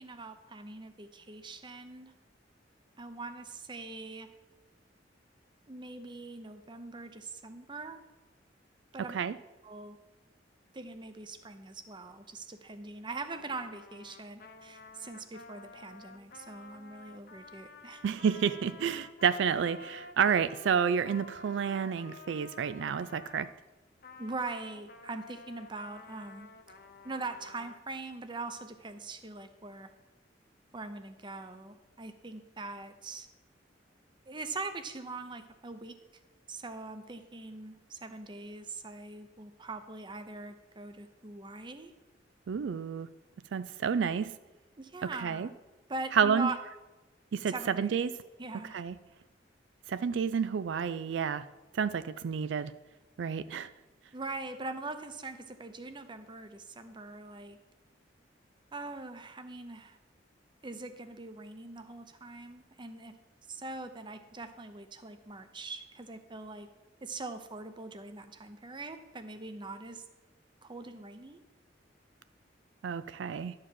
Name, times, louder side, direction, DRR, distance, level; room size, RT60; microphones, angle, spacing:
voice 1, 0.0-2.1 3.0-4.3 5.7-8.0 8.9-9.2 9.6-10.0 10.7-18.0 24.2-26.5 27.0-29.9 30.7-33.3 34.3-35.9 36.5-41.9 44.8-45.5 45.9-46.6 47.5-48.0 48.4-48.8 54.1-57.6 58.7-60.0 60.6-63.1 63.5-66.7 67.0-70.0 70.6-71.4, right 3 dB, 25° right, 9 dB, 0.7 m, -42 dB
Trumpet, 13.3-23.5 24.0-27.8, left 3 dB, 55° left, 0.8 m, -51 dB
voice 2, 18.0-23.5 42.5-43.1 43.5-44.3 45.0-45.5 46.1-46.5 47.3-48.1 48.7-49.0 49.9-51.5 51.7-52.7 53.2-53.7 72.8-73.5, right 7 dB, 75° right, 13 dB, 0.4 m, -30 dB
11.5 x 4.8 x 7.5 m, 1.1 s
head